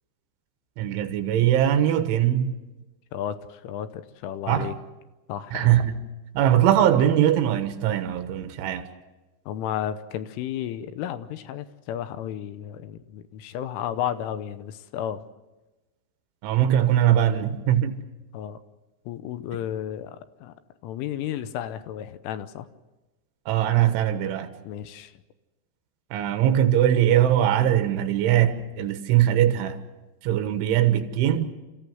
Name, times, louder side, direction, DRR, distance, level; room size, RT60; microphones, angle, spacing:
voice 1, 0.8-2.5 4.5-4.7 5.5-6.0 6.4-8.9 16.4-18.0 23.5-24.5 26.1-29.8 30.2-31.5, right 11 dB, 75° right, 3.6 m, -21 dB
voice 2, 3.1-4.7 5.3-5.8 9.5-15.2 18.3-18.6 19.1-20.5 20.8-22.7 24.6-25.1, left 10 dB, 85° left, 3.4 m, -33 dB
29.0 x 15.0 x 7.8 m
omnidirectional pair, 5.6 m